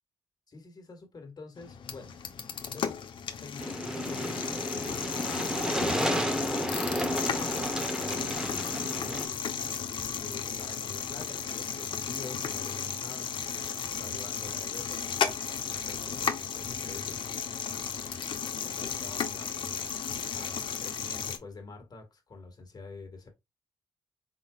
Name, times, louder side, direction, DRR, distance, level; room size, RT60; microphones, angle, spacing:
voice 1, 0.5-2.1 2.7-3.0 3.3-9.4 10.1-13.3 13.9-15.1 15.4-17.5 18.6-23.3, left 3 dB, 45° left, 1.7 m, -47 dB
sound 1, 1.6-21.4, left 7 dB, 70° left, 0.9 m, -34 dB
sound 2, 3.6-9.3, equal, 5° right, 1.0 m, -32 dB
4.9 x 3.9 x 2.4 m
cardioid pair, 90°, 9 cm